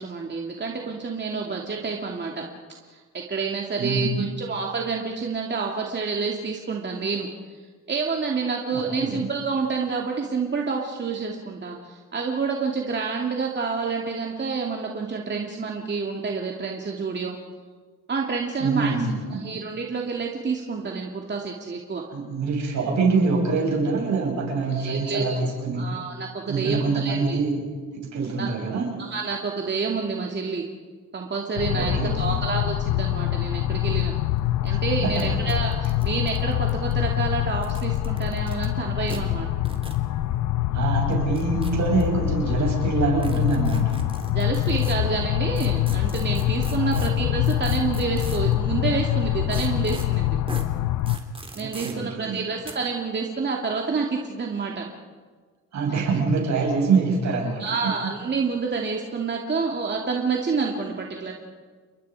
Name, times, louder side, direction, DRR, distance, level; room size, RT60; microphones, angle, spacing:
voice 1, 0.0-2.5 2.9-7.3 7.9-17.4 18.1-18.9 19.3-22.0 24.7-25.4 25.7-27.4 28.4-28.5 29.0-30.7 31.1-34.1 34.6-39.5 44.3-50.3 51.5-54.8 57.6-61.3, right 4 dB, 35° right, 0 dB, 2.6 m, -28 dB
voice 2, 3.8-4.3 8.7-9.2 18.6-19.5 22.1-26.0 26.5-27.6 28.0-28.9 31.7-32.4 34.7-35.4 40.7-44.0 46.9-47.0 51.6-52.4 55.7-57.9, right 4 dB, 65° right, 0 dB, 7.8 m, -25 dB
sound 1, 31.6-51.2, left 14 dB, 75° left, 0.8 m, -25 dB
sound 2, 34.4-34.5 34.7-34.8 35.2-35.3 35.5-36.9 37.5-38.7 39.1-39.2 39.6-40.0 41.1-42.0 43.2-44.9 45.6-48.5 49.5-50.1 50.5-50.6 51.1-51.9 52.6-52.7, right 2 dB, 20° right, 3.5 m, -40 dB
29.5 x 22.5 x 4.9 m, 1.5 s
cardioid pair, 90°, 30 cm